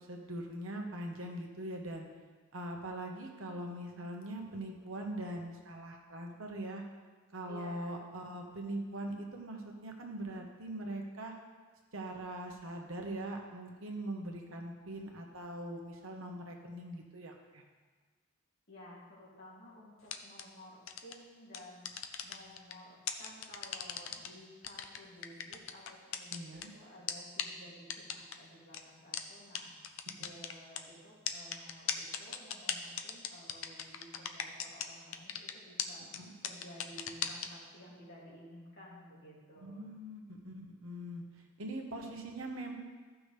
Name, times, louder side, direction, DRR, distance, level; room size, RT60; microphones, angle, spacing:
voice 1, 0.0-2.1 2.5-6.8 7.3-11.3 11.9-17.6 26.3-26.7 30.0-30.1 36.1-36.3 39.6-42.7, right 1 dB, 80° right, 2 dB, 1.2 m, -42 dB
voice 2, 7.5-8.0 18.7-36.0 36.4-39.9, equal, 55° left, -6 dB, 2.8 m, -54 dB
sound 1, 20.0-20.4 20.9-21.1 21.5-22.7 23.1-24.3 24.6-26.6 27.1-27.2 27.4-27.5 27.9-28.3 28.7-28.8 29.1-29.2 29.5-29.6 29.8-30.8 31.3-34.9 35.1-35.5 35.8-35.9 36.1-36.2 36.4-37.5, left 9 dB, 75° left, 0.6 m, -37 dB
14.5 x 6.1 x 3.4 m, 1.4 s
head